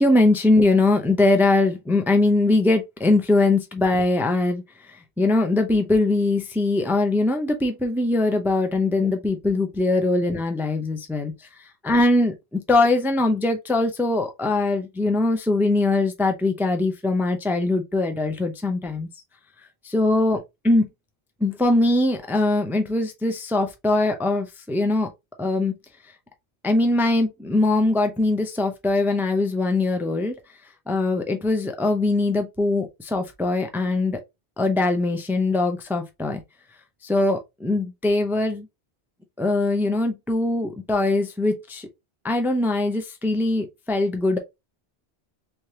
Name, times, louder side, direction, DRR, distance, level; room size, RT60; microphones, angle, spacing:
voice 1, 0.0-4.6 5.2-11.3 11.8-19.1 19.8-20.9 21.4-25.1 25.4-25.8 26.6-30.3 30.9-34.2 34.6-36.4 37.0-38.7 39.4-41.9 42.2-44.4, left 2 dB, 5° right, 0.4 m, -21 dB
3.3 x 3.2 x 2.8 m
omnidirectional pair, 1.1 m